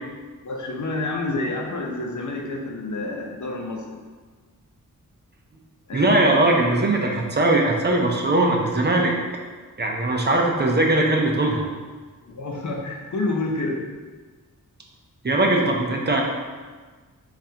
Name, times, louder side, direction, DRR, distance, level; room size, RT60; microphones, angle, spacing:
voice 1, 0.4-4.0 5.9-6.2 12.2-13.8, left 2 dB, 60° left, 0 dB, 0.7 m, -29 dB
voice 2, 5.9-9.1 9.8-11.6 15.2-16.2, right 2 dB, 30° right, 0 dB, 0.5 m, -20 dB
7.4 x 2.5 x 2.8 m, 1.4 s
wide cardioid pair, 140°, 33 cm